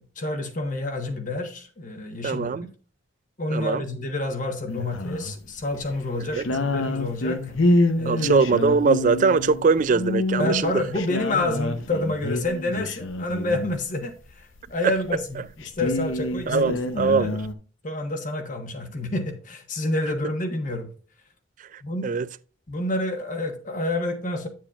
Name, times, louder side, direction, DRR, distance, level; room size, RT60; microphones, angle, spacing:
voice 1, 0.0-2.6 3.4-7.5 7.9-8.5 10.4-17.3 17.8-20.9 21.8-22.1 22.7-24.5, left 2 dB, 40° left, 1.2 m, -29 dB
voice 2, 2.2-2.7 3.5-3.8 6.4-6.5 8.1-10.7 14.8-14.9 16.5-17.4 21.7-22.3, right 4 dB, 40° right, 0.3 m, -22 dB
sound 1, 4.7-5.4 5.7-6.0 6.3-13.8 14.6-14.7 15.0-15.1 15.3-17.5, left 2 dB, 80° left, 0.8 m, -27 dB
8.8 x 7.4 x 2.4 m
head